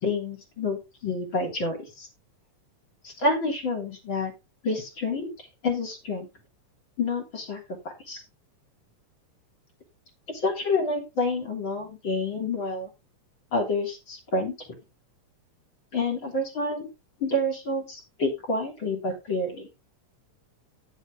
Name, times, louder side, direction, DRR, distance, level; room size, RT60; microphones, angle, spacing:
voice 1, 0.0-2.1 3.0-4.3 4.6-5.3 5.6-6.3 7.0-7.6 8.1-8.2 10.3-12.9 13.5-14.5 15.9-16.9 17.2-19.7, left 2 dB, 35° left, 2 dB, 3.6 m, -28 dB
10.5 x 8.2 x 3.7 m, 0.26 s
omnidirectional pair, 3.8 m